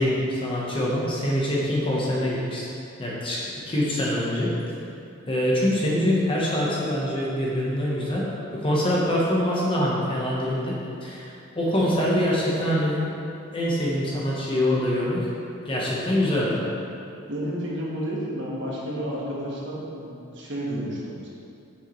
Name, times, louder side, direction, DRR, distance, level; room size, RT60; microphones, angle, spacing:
voice 1, 0.0-2.6 3.0-3.4 3.7-4.5 5.3-8.3 8.5-11.3 11.5-13.0 13.5-15.3 15.6-16.6, left 1 dB, 25° left, -5 dB, 1.0 m, -24 dB
voice 2, 17.3-21.3, equal, 55° right, -5 dB, 1.3 m, -31 dB
7.3 x 6.5 x 3.2 m, 2.6 s
head